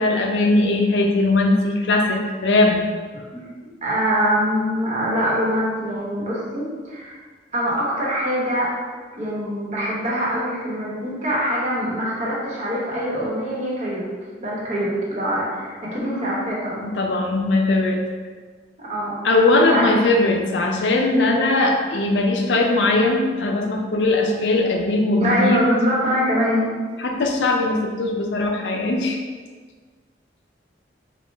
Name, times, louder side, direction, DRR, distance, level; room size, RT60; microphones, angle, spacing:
voice 1, 0.0-2.8 16.8-18.0 19.2-25.6 27.0-29.2, left 2 dB, 80° left, 2 dB, 0.5 m, -19 dB
voice 2, 3.1-3.5 3.8-7.2 7.5-8.7 9.2-14.1 14.4-16.8 18.8-19.4 19.7-19.9 25.2-26.7, equal, 40° right, -6 dB, 1.1 m, -23 dB
4.6 x 2.3 x 3.5 m, 1.5 s
head